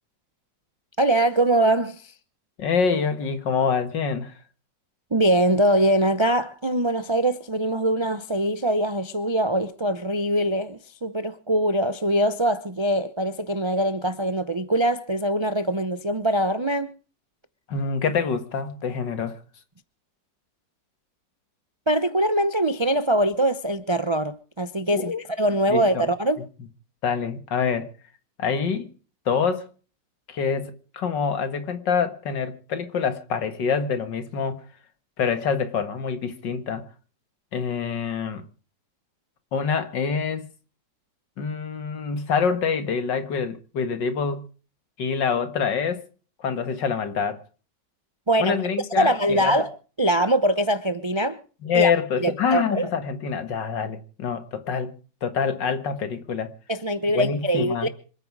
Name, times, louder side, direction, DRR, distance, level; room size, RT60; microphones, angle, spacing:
voice 1, 1.0-2.1 5.1-16.9 21.9-26.4 48.3-48.6 49.0-51.4 51.7-51.9 52.2-52.9 56.7-57.9, right 1 dB, 45° right, 0.3 m, -23 dB
voice 2, 2.6-4.3 17.7-19.4 24.9-25.2 25.7-26.1 27.0-27.9 28.4-28.9 29.3-29.7 30.3-34.6 35.2-36.8 37.5-38.4 39.5-40.5 41.4-44.4 45.0-46.0 46.4-47.4 48.4-49.6 51.6-54.9 55.2-56.5 57.1-57.9, left 6 dB, 80° left, 2.3 m, -26 dB
26.5 x 9.4 x 4.8 m
omnidirectional pair, 1.9 m